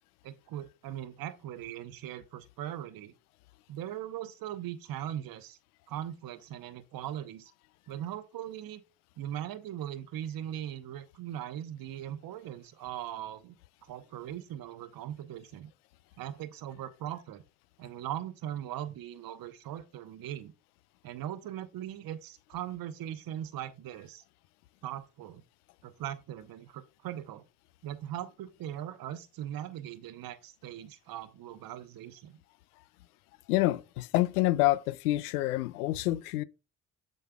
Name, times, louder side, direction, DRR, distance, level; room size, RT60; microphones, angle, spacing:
voice 1, 0.2-3.1 3.7-5.6 5.9-7.5 7.9-8.8 9.2-13.6 13.8-15.7 16.2-17.4 17.8-20.5 21.0-24.2 24.8-25.4 25.8-27.4 27.8-32.4, right 11 dB, 50° right, 0.9 m, -40 dB
voice 2, 33.5-36.4, left 17 dB, 80° left, 0.5 m, -27 dB
7.7 x 6.3 x 2.3 m
figure-of-eight pair, 45°, 45 cm